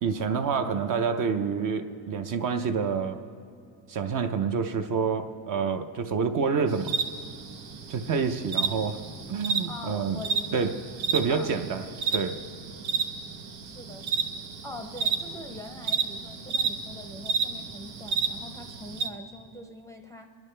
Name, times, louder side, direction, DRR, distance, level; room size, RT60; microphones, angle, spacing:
voice 1, 0.0-3.2 3.9-6.9 7.9-9.0 9.3-10.2 10.5-10.7 11.1-11.8 12.1-12.4, right 5 dB, 45° right, 7 dB, 0.7 m, -27 dB
sound 1, 6.7-19.1, right 5 dB, 90° right, 1.1 m, -32 dB
voice 2, 9.6-10.8 11.3-11.5 13.6-14.1 14.6-20.3, left 1 dB, 5° left, 4 dB, 0.5 m, -43 dB
24.5 x 10.5 x 3.3 m, 2.4 s
cardioid pair, 135°, 46 cm